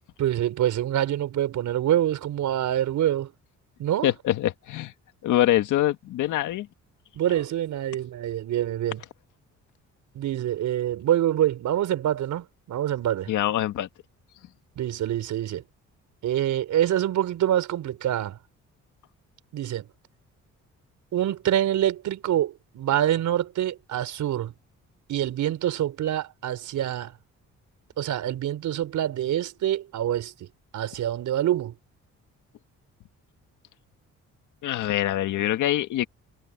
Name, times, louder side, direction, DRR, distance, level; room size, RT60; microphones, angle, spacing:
voice 1, 0.2-3.3 3.8-4.1 7.1-9.0 10.1-13.3 14.8-15.6 16.2-18.4 19.5-19.9 21.1-24.5 25.1-27.1 28.0-30.5 30.7-31.7, right 11 dB, 75° right, 4.7 m, -26 dB
voice 2, 4.0-4.9 5.2-6.7 13.3-13.9 34.6-36.1, left 13 dB, 85° left, 2.0 m, -24 dB
cardioid pair, 90°, 30 cm